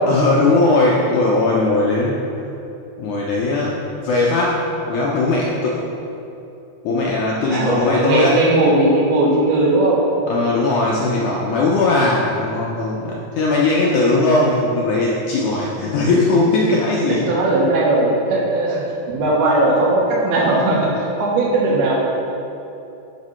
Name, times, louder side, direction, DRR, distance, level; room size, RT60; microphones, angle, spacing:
voice 1, 0.0-2.2 3.0-5.8 6.8-8.4 10.3-17.3, left 2 dB, 75° left, -4 dB, 1.8 m, -18 dB
voice 2, 7.5-10.0 17.3-18.8 19.1-21.9, right 2 dB, 80° right, -4 dB, 3.3 m, -18 dB
9.3 x 5.1 x 5.6 m, 2.8 s
omnidirectional pair, 4.4 m